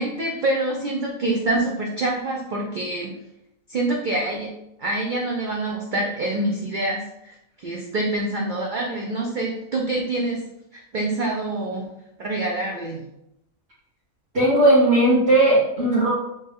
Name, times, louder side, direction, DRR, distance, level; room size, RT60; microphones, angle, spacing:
voice 1, 0.0-3.1 3.7-4.5 4.8-10.4 10.7-11.8 12.2-13.0, right 2 dB, 70° right, 0 dB, 0.4 m, -26 dB
voice 2, 14.3-16.1, right 1 dB, 50° right, -14 dB, 1.7 m, -17 dB
3.6 x 2.7 x 3.4 m, 0.84 s
omnidirectional pair, 1.4 m